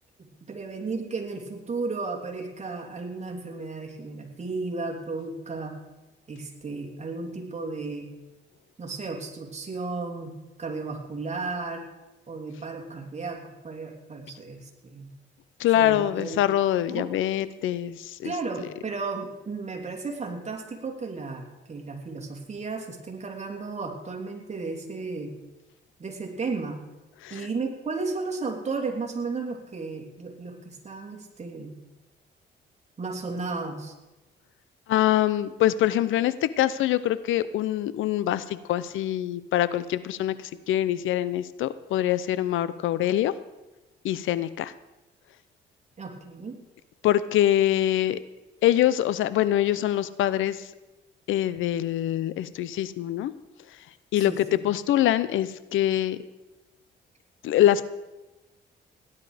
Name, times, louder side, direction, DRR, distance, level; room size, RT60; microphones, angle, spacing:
voice 1, 0.2-5.8 6.3-8.1 8.8-10.3 10.6-11.8 12.3-15.1 15.7-16.4 16.9-17.1 18.2-25.3 26.0-26.8 27.3-31.8 33.0-33.9 46.0-46.6 54.2-54.7, right 3 dB, 35° right, 2 dB, 2.9 m, -34 dB
voice 2, 15.6-18.3 27.2-27.5 34.9-43.3 44.0-44.7 47.0-48.2 48.6-50.7 51.3-53.3 54.1-56.2 57.4-57.8, left 12 dB, 80° left, 16 dB, 0.7 m, -24 dB
17.5 x 11.0 x 5.0 m, 1.1 s
cardioid pair, 90°, 20 cm